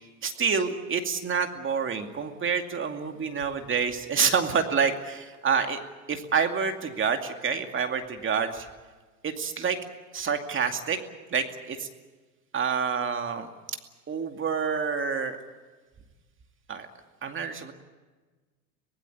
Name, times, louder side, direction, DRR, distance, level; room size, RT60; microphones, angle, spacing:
voice 1, 0.2-5.8 6.1-8.7 9.2-9.8 10.1-11.0 11.3-11.9 12.5-13.5 14.1-15.4 16.7-16.9 17.2-17.7, right 6 dB, 25° right, 5 dB, 2.4 m, -27 dB
24.0 x 19.0 x 8.5 m, 1.3 s
hypercardioid pair, 95°, 45 cm